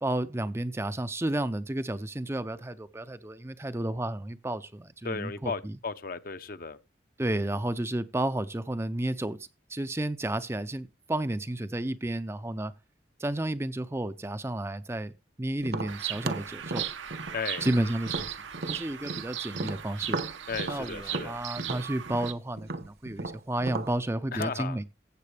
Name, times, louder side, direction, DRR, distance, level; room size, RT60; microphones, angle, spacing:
voice 1, 0.0-5.8 7.2-9.4 9.7-12.7 13.2-15.1 15.4-16.8 17.6-18.4 18.7-20.2 20.7-24.8, right 1 dB, 15° right, 0.5 m, -32 dB
voice 2, 5.0-6.8 17.3-17.7 20.5-21.4 24.3-24.8, left 5 dB, 50° left, 0.7 m, -35 dB
Tap, 15.6-19.3 19.5-23.9, right 2 dB, 55° right, 0.9 m, -35 dB
Bird vocalization bird call bird song, 15.9-22.3, right 10 dB, 85° right, 1.0 m, -38 dB
15.0 x 7.7 x 3.3 m
head